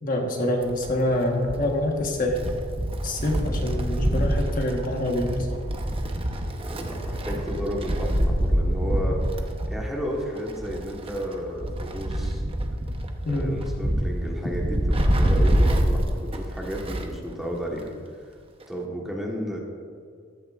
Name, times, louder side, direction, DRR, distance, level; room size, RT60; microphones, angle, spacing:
voice 1, 0.0-2.5 3.0-5.5 13.2-13.6, left 1 dB, 45° left, 1 dB, 1.3 m, -26 dB
Wind, 0.6-17.2 17.5-17.6 18.6-18.7, equal, 30° right, 0.8 m, -26 dB
voice 2, 6.6-9.2 9.7-12.4 13.3-17.9 18.7-19.6, equal, ahead, -2 dB, 1.3 m, -33 dB
14.5 x 11.0 x 2.5 m, 2.1 s
head